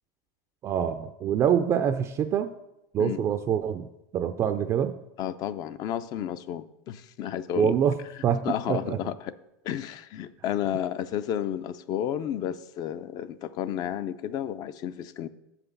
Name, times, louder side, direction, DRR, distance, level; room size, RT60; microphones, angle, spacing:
voice 1, 0.6-2.5 2.9-3.9 4.1-5.0 7.6-8.0 8.2-9.0, right 8 dB, 30° right, 9 dB, 0.4 m, -25 dB
voice 2, 5.2-7.8 8.4-9.3 9.6-15.3, left 10 dB, 45° left, 13 dB, 0.5 m, -32 dB
7.7 x 5.9 x 6.7 m, 0.89 s
supercardioid pair, 125°, 9 cm